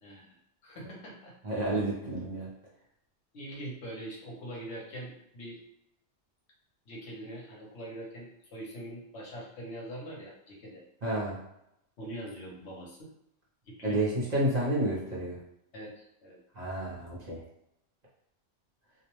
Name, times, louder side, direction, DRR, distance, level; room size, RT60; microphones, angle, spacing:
voice 1, 0.0-0.4 0.6-1.7 3.3-5.6 6.9-10.8 12.0-13.1 13.6-14.0 15.7-16.4, right 1 dB, 75° left, -3 dB, 1.0 m, -43 dB
voice 2, 1.4-2.5 11.0-11.4 13.8-15.4 16.5-17.4, right 1 dB, 45° right, -6 dB, 0.7 m, -30 dB
2.4 x 2.1 x 2.9 m, 0.80 s
omnidirectional pair, 1.2 m